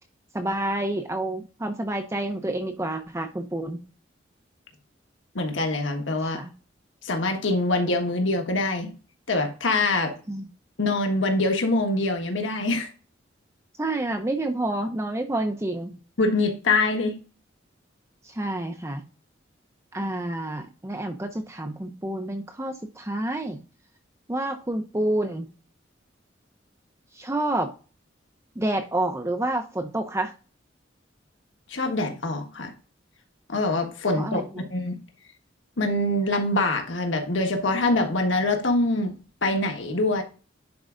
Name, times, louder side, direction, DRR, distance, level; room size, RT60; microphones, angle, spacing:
voice 1, 0.3-3.8 6.2-6.5 10.3-10.4 13.8-16.0 18.2-19.0 19.9-23.6 24.3-25.5 27.1-27.7 28.6-30.3 34.2-34.7, right 1 dB, 15° right, 6 dB, 0.6 m, -28 dB
voice 2, 5.3-6.4 7.0-8.9 9.3-10.1 10.8-12.9 16.2-17.1 31.7-32.7 33.5-34.4 34.7-35.0 35.8-39.1 39.4-40.2, left 2 dB, 80° left, 4 dB, 1.5 m, -24 dB
10.5 x 4.7 x 2.6 m, 0.35 s
head